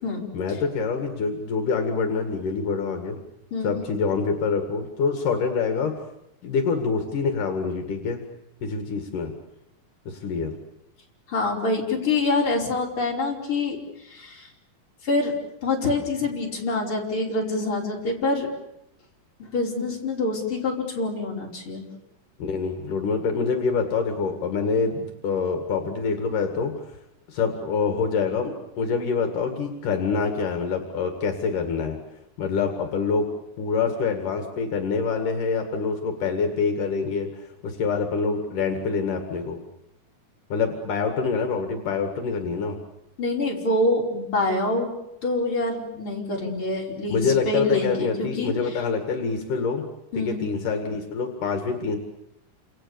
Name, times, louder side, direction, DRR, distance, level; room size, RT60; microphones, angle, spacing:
voice 1, 0.3-3.2 3.6-6.0 6.4-8.2 8.6-9.3 10.1-10.5 22.4-27.0 27.3-32.0 32.4-33.3 33.6-39.6 40.5-42.8 47.1-49.8 50.2-52.0, left 5 dB, 75° left, 5 dB, 3.7 m, -26 dB
voice 2, 3.5-3.8 11.3-13.8 14.0-14.5 15.0-15.3 15.6-18.5 19.4-21.8 43.2-44.9 45.2-48.5 50.1-50.5, left 2 dB, 40° left, -1 dB, 5.8 m, -26 dB
29.5 x 28.0 x 7.1 m, 0.84 s
omnidirectional pair, 3.8 m